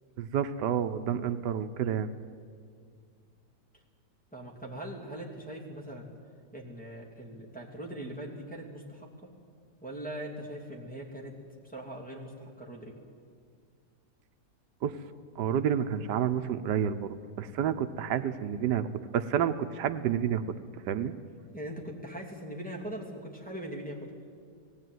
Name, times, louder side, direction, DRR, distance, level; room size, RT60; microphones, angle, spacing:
voice 1, 0.2-2.1 14.8-15.0 15.4-18.9 19.1-20.4 20.9-21.1, right 9 dB, 85° right, 10 dB, 1.3 m, -29 dB
voice 2, 4.3-6.1 6.5-9.1 9.8-11.3 11.6-12.9 21.5-24.1, right 1 dB, 5° left, -3 dB, 2.7 m, -41 dB
18.5 x 16.0 x 9.3 m, 2.2 s
omnidirectional pair, 1.8 m